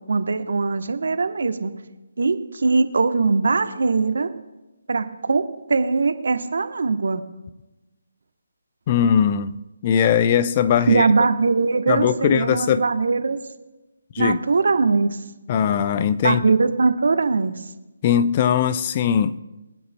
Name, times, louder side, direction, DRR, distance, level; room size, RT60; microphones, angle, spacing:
voice 1, 0.0-1.7 2.2-4.3 4.9-7.2 10.9-13.4 14.2-15.2 16.2-17.7, right 4 dB, 65° right, 0.9 m, -21 dB
voice 2, 8.9-11.1 11.9-12.8 14.1-14.4 15.5-16.4 18.0-19.4, left 8 dB, 30° left, 0.5 m, -20 dB
22.5 x 9.4 x 2.2 m
figure-of-eight pair, 150°, 0 cm